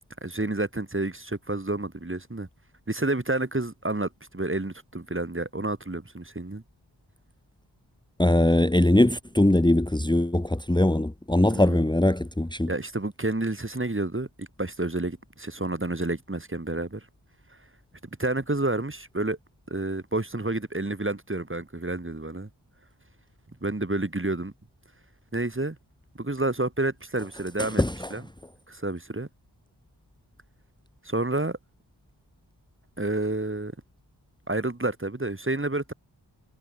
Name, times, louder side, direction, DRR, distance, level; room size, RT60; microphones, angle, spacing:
voice 1, 0.2-2.5 2.9-6.6 11.5-11.8 12.7-17.0 18.2-19.4 19.7-22.5 23.6-24.5 25.3-25.8 26.2-27.8 28.1-28.2 28.7-29.3 31.0-31.6 33.0-33.7 34.5-35.9, right 2 dB, 25° right, 3.7 m, -29 dB
voice 2, 8.2-12.7 27.6-28.1, left 1 dB, 10° left, 1.5 m, -21 dB
wide cardioid pair, 55°, 44 cm